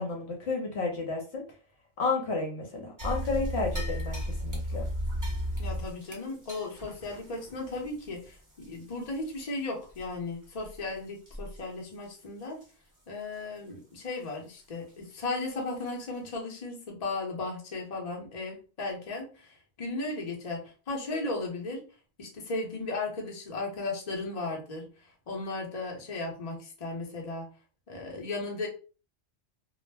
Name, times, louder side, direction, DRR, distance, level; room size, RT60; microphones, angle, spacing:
voice 1, 0.0-1.4 2.0-4.9, left 3 dB, 65° left, 0 dB, 1.0 m, -32 dB
sound 1, 3.0-9.6 9.9-10.0 10.6-10.8 11.3-11.6 11.9-12.0 12.6-12.7 15.1-15.2 15.8-15.9, equal, 20° right, 0.7 m, -35 dB
voice 2, 5.6-12.6 13.1-21.9 22.2-27.5 27.9-28.7, left 3 dB, 35° left, -1 dB, 0.8 m, -36 dB
2.3 x 2.0 x 3.3 m, 0.35 s
omnidirectional pair, 1.2 m